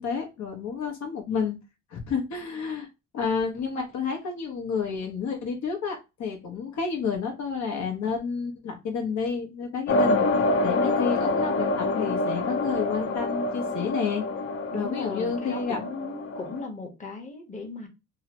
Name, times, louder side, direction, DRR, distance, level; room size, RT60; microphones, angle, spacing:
voice 1, 0.0-1.6 1.9-2.9 3.1-14.3 14.7-15.8, left 5 dB, 65° left, 0.9 m, -30 dB
sound 1, 9.9-16.6, left 2 dB, 45° left, 0.5 m, -26 dB
voice 2, 14.7-17.9, left 3 dB, 25° left, 0.9 m, -37 dB
2.8 x 2.1 x 2.9 m
cardioid pair, 90°, 30 cm